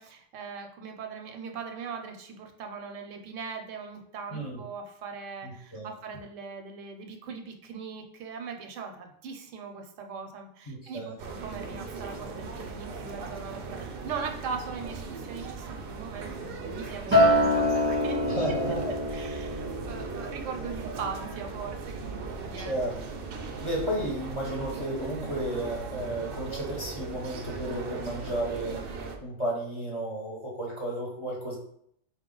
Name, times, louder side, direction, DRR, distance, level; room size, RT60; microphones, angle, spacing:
voice 1, 0.0-18.5 19.1-22.8, right 5 dB, 90° right, 4 dB, 1.0 m, -40 dB
voice 2, 4.3-4.6 5.4-5.9 10.7-11.1 18.3-18.9 22.5-23.0 23.6-28.8 29.2-31.6, right 1 dB, 30° left, -3 dB, 0.7 m, -33 dB
sound 1, 11.2-29.2, right 4 dB, 60° right, 0.6 m, -38 dB
Acoustic guitar, 17.1-21.5 21.9-22.3, left 1 dB, 15° right, 0.5 m, -26 dB
4.2 x 2.2 x 3.7 m, 0.69 s
omnidirectional pair, 1.2 m